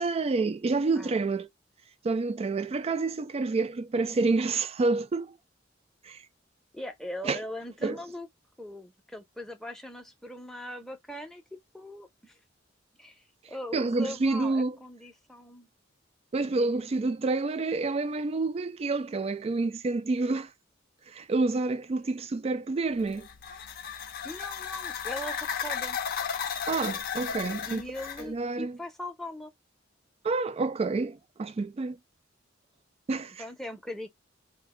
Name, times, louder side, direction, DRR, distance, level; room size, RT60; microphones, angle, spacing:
voice 1, 0.0-1.5 2.0-5.3 6.0-6.2 7.2-7.4 7.8-8.0 13.7-14.8 16.3-20.5 21.1-23.3 26.7-27.8 28.2-28.8 30.2-32.0 33.1-33.4, right 3 dB, 30° right, 0.3 m, -28 dB
voice 2, 6.7-8.3 8.6-12.3 13.0-13.2 13.5-15.7 16.5-16.8 24.2-26.0 27.7-29.5 33.4-34.1, left 1 dB, ahead, 0.6 m, -40 dB
sound 1, 23.0-28.3, left 7 dB, 50° left, 0.5 m, -34 dB
2.5 x 2.2 x 3.5 m
head